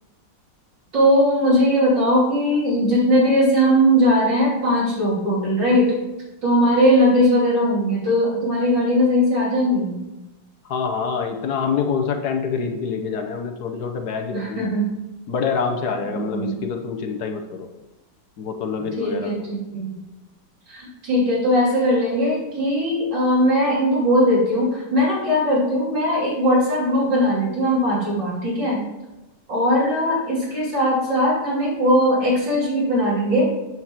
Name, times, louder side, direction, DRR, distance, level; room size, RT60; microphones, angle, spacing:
voice 1, 0.9-5.9 6.4-10.0 14.3-14.9 16.1-16.6 19.0-19.9 20.7-28.8 29.5-33.5, equal, 75° right, -5 dB, 3.7 m, -19 dB
voice 2, 10.7-14.7 15.3-17.7 18.4-19.3, left 6 dB, 65° left, 5 dB, 1.3 m, -26 dB
8.1 x 4.5 x 7.2 m, 1.0 s
omnidirectional pair, 1.9 m